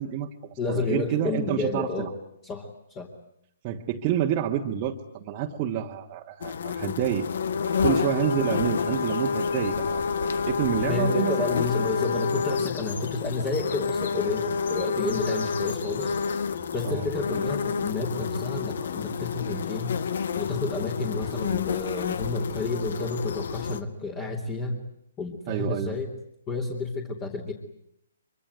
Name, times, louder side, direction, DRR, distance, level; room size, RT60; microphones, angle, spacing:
voice 1, 0.0-2.1 3.6-7.3 7.8-11.4 16.8-17.1 25.5-25.9, right 10 dB, 35° right, 1 dB, 1.5 m, -28 dB
voice 2, 0.6-2.1 2.4-3.1 10.9-16.4 16.7-24.8 25.2-26.1 26.5-27.5, left 3 dB, 25° left, 2 dB, 2.8 m, -30 dB
sound 1, 6.4-23.8, left 6 dB, 60° left, 1.3 m, -29 dB
24.0 x 24.0 x 9.3 m, 0.73 s
figure-of-eight pair, 130°, 0 cm